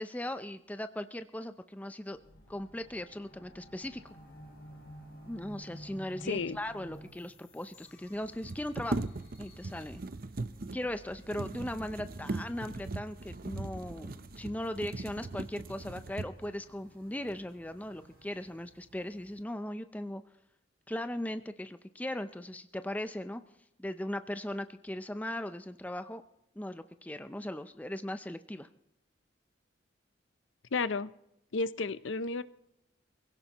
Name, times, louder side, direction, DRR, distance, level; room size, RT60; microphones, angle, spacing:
voice 1, 0.0-2.2 2.5-4.0 5.3-9.1 9.4-10.0 10.7-20.2 20.9-23.4 23.8-26.2 26.6-28.7, left 1 dB, 10° left, 10 dB, 0.5 m, -38 dB
sound 1, 2.1-18.3, equal, 70° left, 4.4 m, -54 dB
voice 2, 6.2-6.6 30.7-31.1 31.5-32.4, left 3 dB, 85° left, 15 dB, 0.6 m, -32 dB
sound 2, 6.8-6.9 7.0-7.1 8.2-16.6 17.3-17.4 17.8-18.5 18.8-19.4, right 2 dB, 50° right, 0.6 m, -40 dB
24.0 x 16.5 x 3.0 m, 0.82 s
head